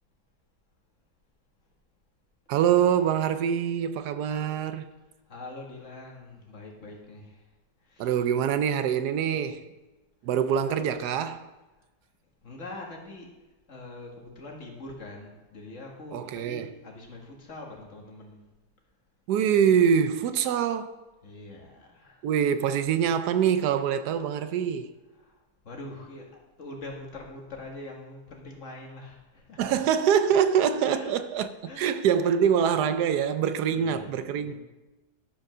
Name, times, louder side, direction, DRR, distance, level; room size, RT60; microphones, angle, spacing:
voice 1, 2.5-4.9 8.0-9.6 10.2-11.5 16.1-16.7 19.3-21.0 22.2-24.9 29.6-34.5, right 8 dB, 80° right, 1.1 m, -24 dB
voice 2, 5.3-7.5 7.8-8.2 12.4-13.3 13.7-18.4 21.2-22.3 25.2-29.8 30.8-31.1 31.7-31.9 33.7-34.5, left 2 dB, 50° left, 1.9 m, -43 dB
11.5 x 5.2 x 6.1 m
omnidirectional pair, 1.8 m